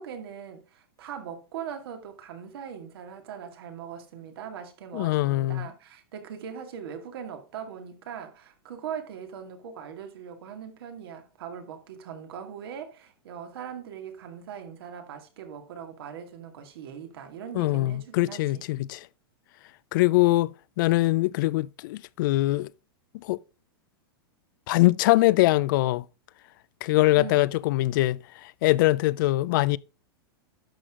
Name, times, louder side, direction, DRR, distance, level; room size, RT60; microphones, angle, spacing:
voice 1, 0.0-18.6 27.2-27.5, right 8 dB, 70° right, 2.3 m, -40 dB
voice 2, 4.9-5.7 17.5-19.1 19.9-22.7 23.2-23.4 24.7-26.0 26.8-29.8, left 18 dB, 55° left, 0.4 m, -23 dB
11.5 x 6.2 x 3.7 m
supercardioid pair, 145°, 13 cm